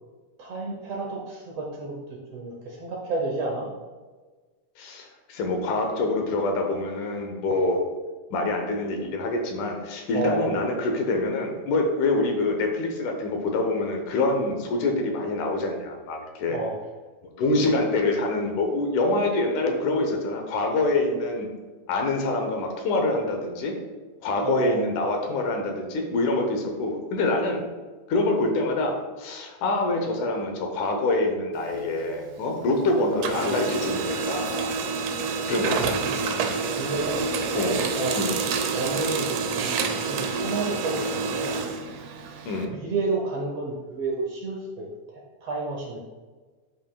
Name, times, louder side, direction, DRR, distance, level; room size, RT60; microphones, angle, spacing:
voice 1, 0.4-3.7 10.1-10.6 16.5-16.8 24.4-24.9 36.0-36.2 36.7-37.3 37.7-38.2 38.7-41.6 42.7-46.0, right 3 dB, 65° right, -1 dB, 1.6 m, -31 dB
voice 2, 4.8-7.8 8.3-16.6 17.4-21.5 21.9-23.8 24.2-27.6 28.1-34.8 35.5-36.2 37.6-37.8 38.1-38.3 42.5-42.7, left 2 dB, 75° left, 3 dB, 2.4 m, -25 dB
Printer, 31.5-32.8 33.1-42.7, right 5 dB, 85° right, 1.4 m, -28 dB
11.0 x 5.3 x 2.3 m, 1.3 s
omnidirectional pair, 3.6 m